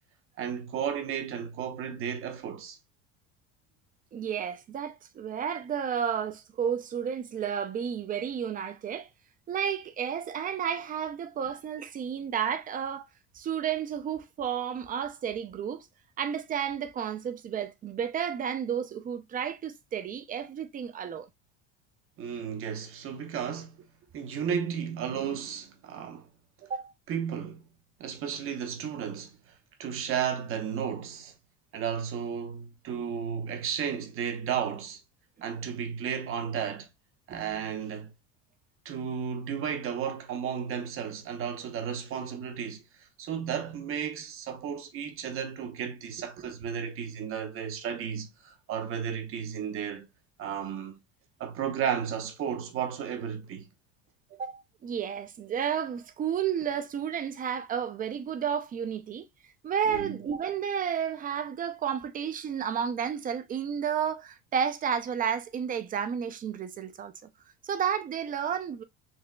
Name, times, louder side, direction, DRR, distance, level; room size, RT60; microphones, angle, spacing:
voice 1, 0.4-2.8 22.2-23.8 24.1-26.3 27.1-27.6 28.0-29.5 29.8-31.3 31.7-35.0 35.4-36.9 37.3-38.1 38.8-42.8 43.2-50.1 50.4-51.0 51.4-53.7 59.9-60.2, right 8 dB, 45° right, 0.9 m, -33 dB
voice 2, 4.1-9.1 9.5-13.0 13.3-15.9 16.2-21.3 26.6-26.9 46.4-46.5 54.3-59.3 59.6-67.1 67.6-68.8, right 8 dB, 30° right, 0.5 m, -32 dB
4.1 x 2.8 x 2.2 m
cardioid pair, 125°, 30 cm